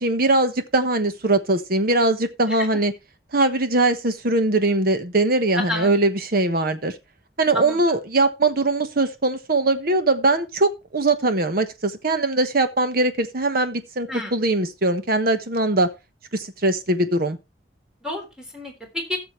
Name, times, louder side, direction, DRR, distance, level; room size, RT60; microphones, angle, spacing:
voice 1, 0.0-2.9 3.3-6.9 7.4-15.9 16.3-17.4, right 2 dB, 60° right, 1.3 m, -21 dB
voice 2, 5.6-5.9 7.5-7.8 14.1-14.3 18.0-19.2, left 1 dB, 5° right, 3.4 m, -29 dB
16.5 x 6.8 x 3.2 m
head